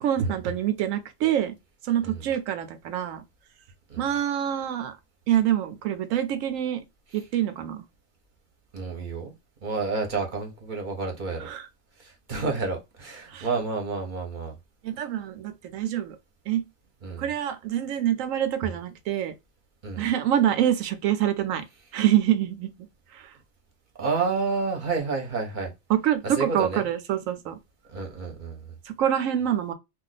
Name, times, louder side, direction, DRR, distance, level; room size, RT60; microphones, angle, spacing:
voice 1, 0.0-1.6 1.8-3.2 4.0-4.9 5.3-6.8 7.1-7.8 11.4-11.7 13.3-13.5 14.8-16.2 16.5-16.6 17.2-19.4 20.0-21.6 21.9-22.7 23.1-23.3 25.9-27.6 28.8-29.7, right 11 dB, 75° right, 0.9 m, -26 dB
voice 2, 8.7-9.3 9.6-11.5 12.0-14.6 17.0-17.3 19.8-20.1 24.0-25.7 26.2-26.9 27.9-28.8, right 4 dB, 45° right, 0.8 m, -30 dB
2.4 x 2.2 x 3.8 m
omnidirectional pair, 1.4 m